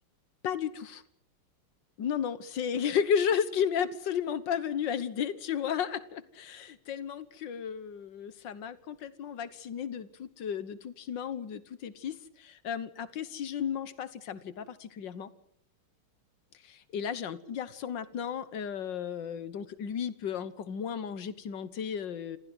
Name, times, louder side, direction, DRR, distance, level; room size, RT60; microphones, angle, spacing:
voice 1, 0.4-1.0 2.0-15.3 16.6-22.4, left 8 dB, 60° left, 15 dB, 1.8 m, -33 dB
27.0 x 15.0 x 7.9 m, 0.69 s
omnidirectional pair, 2.3 m